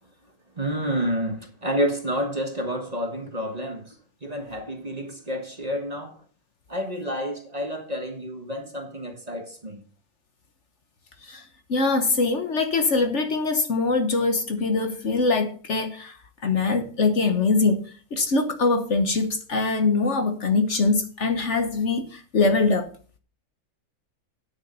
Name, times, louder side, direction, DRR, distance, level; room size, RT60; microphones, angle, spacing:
voice 1, 0.6-3.9 4.2-6.2 6.7-9.8, equal, 25° right, 1.5 m, -29 dB
voice 2, 11.2-22.9, left 3 dB, 50° left, 1.3 m, -23 dB
9.4 x 7.4 x 5.5 m
omnidirectional pair, 1.6 m